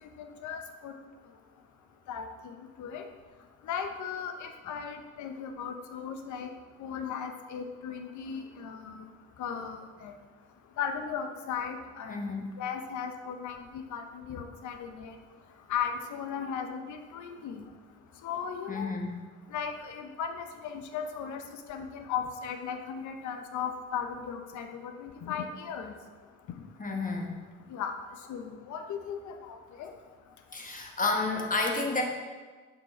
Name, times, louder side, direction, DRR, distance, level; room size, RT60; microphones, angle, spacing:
voice 1, 0.2-0.9 2.1-3.1 3.6-6.5 6.8-9.1 9.4-10.1 10.8-12.3 12.6-15.2 15.7-17.6 18.2-18.9 19.5-21.4 21.7-25.9 27.7-27.9 28.3-29.9, left 7 dB, 70° left, 5 dB, 0.7 m, -37 dB
voice 2, 12.1-12.5 18.7-19.1 26.8-27.4 30.5-32.0, left 3 dB, 25° left, 1 dB, 1.1 m, -30 dB
6.9 x 4.6 x 4.3 m, 1.4 s
cardioid pair, 90°, 30 cm